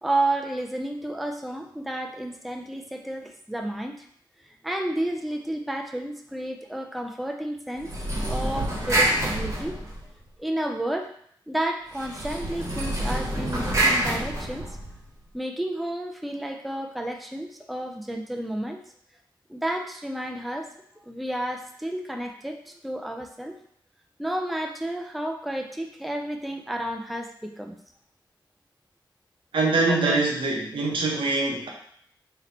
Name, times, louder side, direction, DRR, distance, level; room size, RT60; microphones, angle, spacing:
voice 1, 0.0-4.1 4.6-7.9 8.3-9.8 10.4-11.1 11.5-14.7 15.3-18.8 19.5-20.7 21.0-23.6 24.2-27.7 29.9-30.2, right 1 dB, ahead, 3 dB, 0.4 m, -31 dB
sound 1, 7.8-10.3 11.9-15.1, right 1 dB, 35° right, 1.1 m, -27 dB
voice 2, 29.5-31.7, right 3 dB, 90° right, -1 dB, 0.9 m, -24 dB
3.5 x 2.8 x 3.8 m, 0.65 s
wide cardioid pair, 135°, 8 cm